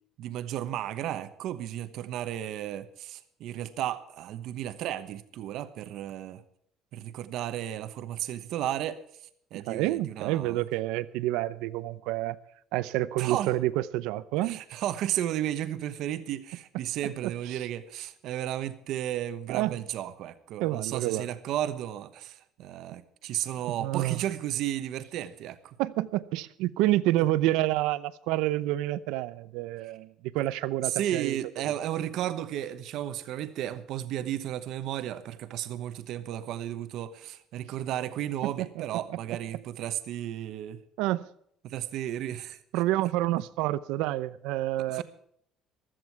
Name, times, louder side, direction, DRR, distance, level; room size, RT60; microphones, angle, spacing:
voice 1, 0.2-6.4 6.9-9.0 9.5-10.6 13.2-13.5 14.4-25.8 29.8-29.9 30.8-40.8 41.6-42.6 44.8-45.0, right 12 dB, 55° right, 1.1 m, -33 dB
voice 2, 9.5-12.4 12.7-14.6 17.0-17.7 19.5-19.7 20.6-21.3 23.7-24.2 25.8-30.1 30.3-31.4 38.4-38.5 41.0-41.3 42.7-45.0, right 16 dB, 90° right, 0.7 m, -28 dB
15.5 x 13.0 x 4.6 m
cardioid pair, 180°, 0 cm